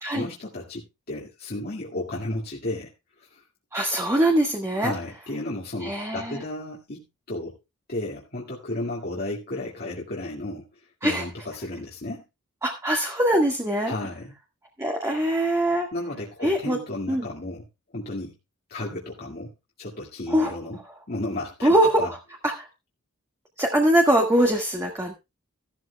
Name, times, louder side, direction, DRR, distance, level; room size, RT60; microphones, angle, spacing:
voice 1, 0.1-2.9 3.2-3.4 4.7-7.5 7.9-10.6 11.0-12.2 13.9-14.3 15.9-17.6 17.9-18.4 18.7-19.5 19.8-20.8 21.1-22.1, left 1 dB, 45° left, -3 dB, 2.1 m, -33 dB
voice 2, 3.7-4.9 5.8-6.4 11.0-11.2 12.6-13.9 14.8-15.9 16.4-16.8 17.1-17.3 20.3-20.5 21.6-22.2 22.4-22.7 23.6-25.1, right 1 dB, 15° right, 1 dB, 1.7 m, -22 dB
15.5 x 12.5 x 2.3 m, 0.25 s
head